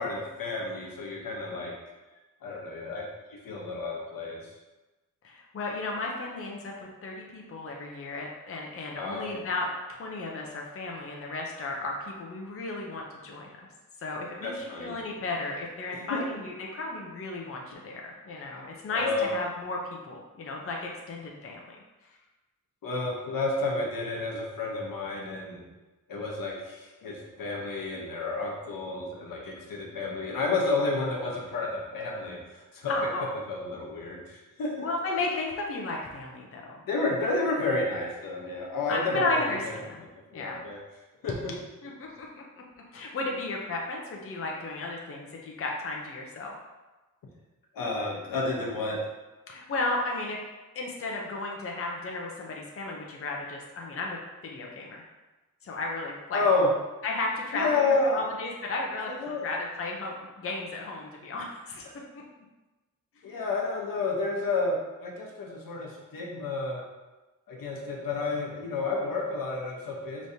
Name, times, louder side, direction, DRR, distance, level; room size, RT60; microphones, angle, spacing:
voice 1, 0.0-1.7 2.4-3.0 3.3-4.4 9.0-9.3 14.4-14.9 15.9-16.2 18.9-19.3 22.8-25.6 26.1-33.1 33.5-34.7 36.9-39.7 40.3-40.8 41.2-41.5 47.7-49.0 56.3-56.7 57.5-58.2 59.0-59.5 61.9-62.0 63.2-66.8 67.5-70.3, left 3 dB, 85° left, -2 dB, 1.0 m, -30 dB
voice 2, 5.2-13.5 14.0-21.8 32.9-33.3 34.8-36.8 38.9-40.1 40.3-40.6 41.8-42.4 42.9-46.6 49.5-50.4 50.7-55.0 55.6-56.4 57.0-59.1 59.4-61.9, left 2 dB, 40° left, -1 dB, 0.6 m, -34 dB
4.9 x 3.1 x 2.7 m, 1.1 s
wide cardioid pair, 120°, 33 cm